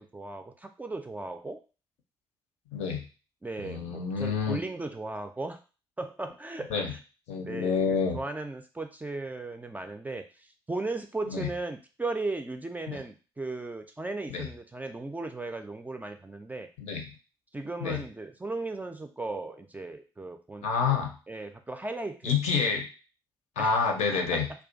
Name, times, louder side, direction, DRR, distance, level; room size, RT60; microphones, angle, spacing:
voice 1, 0.0-1.6 3.4-5.6 6.0-7.0 7.4-16.7 17.5-20.9 21.3-22.4 23.6-23.7 24.1-24.4, right 2 dB, 15° right, 6 dB, 0.3 m, -36 dB
voice 2, 2.7-3.1 3.6-4.6 6.7-6.9 7.3-8.2 11.3-11.5 12.9-13.0 14.3-14.5 16.8-17.1 17.8-18.0 20.6-21.2 22.2-22.9 23.6-24.5, left 5 dB, 60° left, 3 dB, 0.5 m, -28 dB
2.3 x 2.2 x 2.5 m, 0.34 s
figure-of-eight pair, 45°, 12 cm